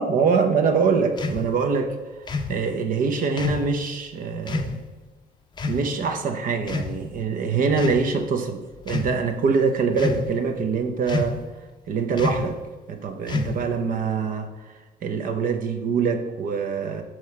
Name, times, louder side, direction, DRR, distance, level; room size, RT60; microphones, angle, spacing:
voice 1, 0.0-2.0 2.5-4.8 5.7-11.4 11.9-12.6 12.9-14.5 15.0-17.0, right 5 dB, 55° right, 7 dB, 0.9 m, -24 dB
sound 1, 1.2-1.4 2.3-2.6 3.4-3.7 4.5-4.7 5.6-5.9 6.6-7.2 7.7-8.1 8.8-9.1 10.0-10.4 11.1-11.5 12.2-12.5 13.3-13.7, left 3 dB, 25° left, 0.6 m, -28 dB
6.3 x 4.4 x 4.8 m, 1.2 s
cardioid pair, 110°, 17 cm